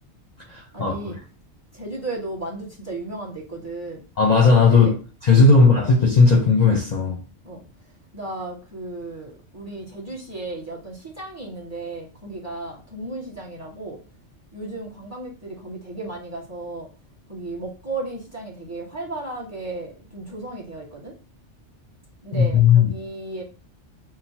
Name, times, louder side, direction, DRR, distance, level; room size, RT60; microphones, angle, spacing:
voice 1, 0.7-1.2 1.7-4.0 4.7-5.0 5.5-5.8 7.4-7.6 8.1-14.0 14.5-16.9 17.3-21.2 22.2-23.4, right 2 dB, 15° right, 1.2 m, -34 dB
voice 2, 4.2-4.9 5.2-7.2 22.3-22.9, left 4 dB, 40° left, 0.7 m, -15 dB
6.2 x 2.1 x 2.8 m
omnidirectional pair, 1.2 m